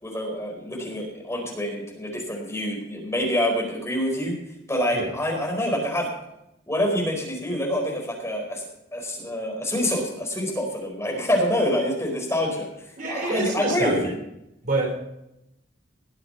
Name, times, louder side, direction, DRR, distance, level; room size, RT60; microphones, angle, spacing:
voice 1, 0.0-4.4 4.7-6.1 6.7-8.7 8.9-12.7 13.1-14.2, equal, 15° left, -1 dB, 4.7 m, -26 dB
voice 2, 13.0-14.1 14.6-15.0, right 2 dB, 50° right, 1 dB, 4.3 m, -26 dB
20.0 x 7.8 x 5.7 m, 0.84 s
head